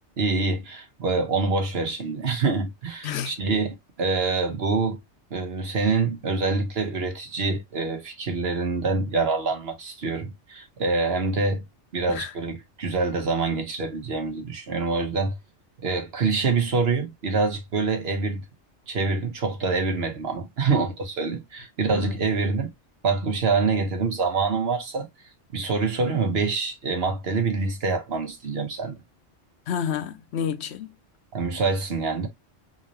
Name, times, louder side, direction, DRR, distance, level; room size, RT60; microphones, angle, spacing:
voice 1, 0.2-5.0 5.3-11.6 11.9-15.4 15.8-18.4 18.9-22.7 23.0-25.1 25.5-29.0 31.3-32.3, right 4 dB, 65° right, 1.3 m, -25 dB
voice 2, 3.0-3.4 12.1-12.3 21.9-22.2 29.7-30.9, left 8 dB, 70° left, 0.9 m, -30 dB
3.8 x 2.7 x 3.0 m
omnidirectional pair, 1.2 m